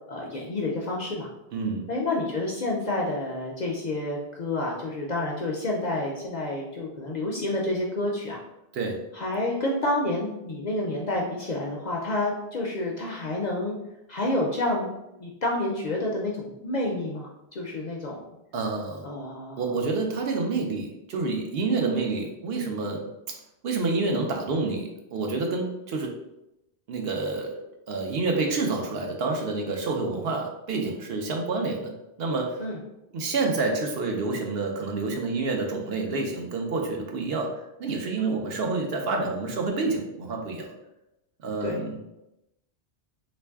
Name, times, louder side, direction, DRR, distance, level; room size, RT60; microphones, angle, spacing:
voice 1, 0.1-1.3 1.9-8.4 9.1-13.8 14.1-14.9 15.2-18.2 19.0-19.6 32.6-32.8 41.6-41.8, left 2 dB, 55° left, -2 dB, 0.5 m, -29 dB
voice 2, 1.5-1.8 8.7-9.0 18.5-19.0 19.6-23.0 23.6-26.1 26.9-27.6 27.9-31.9 32.2-32.6 33.1-40.7 41.4-42.0, right 3 dB, 65° right, 1 dB, 0.8 m, -28 dB
3.1 x 2.5 x 3.4 m, 0.90 s
omnidirectional pair, 1.1 m